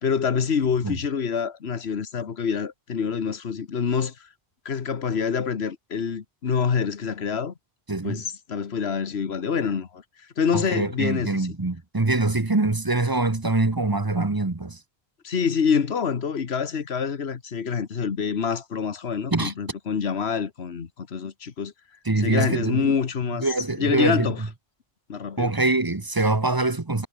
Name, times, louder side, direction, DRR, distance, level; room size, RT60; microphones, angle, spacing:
voice 1, 0.0-4.3 4.6-7.5 8.0-11.5 15.2-21.7 22.2-23.5 23.8-24.4 25.1-25.5, left 6 dB, 75° left, 1.6 m, -26 dB
voice 2, 7.9-8.2 10.5-14.8 19.3-19.5 22.0-22.9 23.4-24.3 25.4-27.1, right 2 dB, 20° right, 1.1 m, -24 dB
omnidirectional pair, 1.1 m